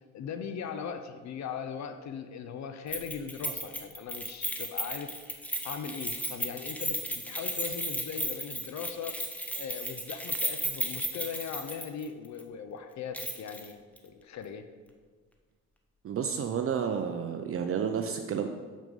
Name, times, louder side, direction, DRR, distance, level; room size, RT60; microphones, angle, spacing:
voice 1, 0.1-5.2 5.6-9.2 9.6-14.7, left 7 dB, 65° left, 9 dB, 0.7 m, -39 dB
Keys jangling, 2.9-12.1 12.4-12.5 13.1-13.7 14.0-14.1, equal, 5° left, 0.9 m, -34 dB
voice 2, 16.0-18.5, right 7 dB, 50° right, 6 dB, 0.6 m, -31 dB
6.6 x 6.1 x 5.4 m, 1.5 s
cardioid pair, 90°, 30 cm